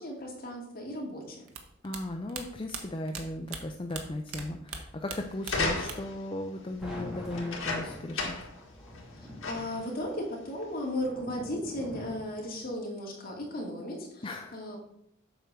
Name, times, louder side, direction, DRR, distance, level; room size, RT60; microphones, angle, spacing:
voice 1, 0.0-1.4 9.1-14.3 14.5-14.8, left 1 dB, 45° left, -2 dB, 2.4 m, -36 dB
sound 1, 1.5-4.4 4.7-6.2 6.5-7.2, right 5 dB, 90° right, 1.3 m, -41 dB
voice 2, 1.8-8.4 14.2-14.6, left 1 dB, 25° left, 3 dB, 0.5 m, -36 dB
sound 2, 5.4-6.2 7.3-8.6 8.9-9.0 9.4-9.9 10.6-10.7, left 3 dB, 75° left, 1.8 m, -33 dB
sound 3, 6.4-12.7, left 1 dB, 5° right, 2.1 m, -45 dB
8.0 x 4.6 x 6.7 m, 0.74 s
head